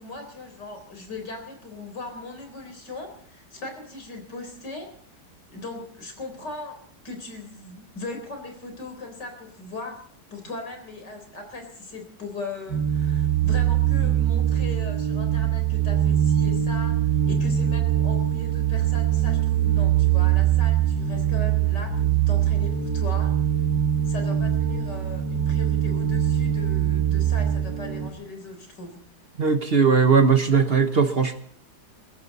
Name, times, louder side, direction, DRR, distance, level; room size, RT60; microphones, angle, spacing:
voice 1, 0.0-4.9 5.5-6.8 7.0-10.0 10.3-17.0 17.2-23.3 24.1-29.0, left 3 dB, 90° left, 5 dB, 4.7 m, -38 dB
sound 1, 12.7-28.1, right 10 dB, 80° right, 2.0 m, -22 dB
voice 2, 29.4-31.3, right 5 dB, 40° right, 9 dB, 1.0 m, -19 dB
21.5 x 15.0 x 4.1 m, 0.63 s
omnidirectional pair, 1.8 m